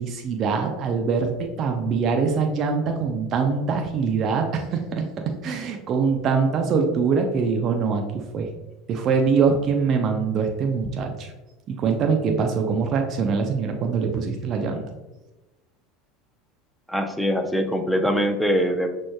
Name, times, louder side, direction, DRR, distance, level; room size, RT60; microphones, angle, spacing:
voice 1, 0.0-5.0 5.4-8.0 8.3-8.5 8.9-11.3 11.7-14.8, right 5 dB, 45° right, 4 dB, 0.6 m, -23 dB
voice 2, 16.9-18.9, equal, ahead, 5 dB, 0.6 m, -23 dB
6.1 x 3.1 x 2.2 m, 1.1 s
hypercardioid pair, 80°, 0 cm